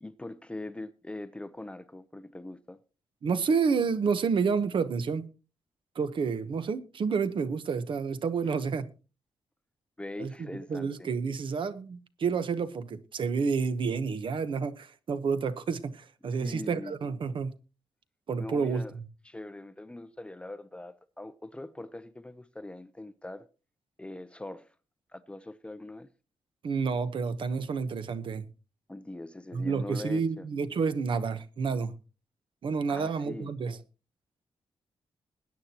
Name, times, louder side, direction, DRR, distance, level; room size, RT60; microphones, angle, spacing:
voice 1, 0.0-2.8 8.4-8.6 10.0-11.1 16.3-17.0 18.4-18.9 19.2-23.5 24.0-24.7 25.1-26.1 28.9-30.5 32.9-33.5, left 2 dB, 10° left, 0.5 m, -42 dB
voice 2, 3.2-5.3 5.9-8.9 10.2-10.3 10.7-17.5 18.3-18.8 26.6-28.4 29.5-31.9 32.6-33.8, right 5 dB, 55° right, 1.0 m, -29 dB
21.0 x 9.4 x 2.9 m
wide cardioid pair, 145°, 10 cm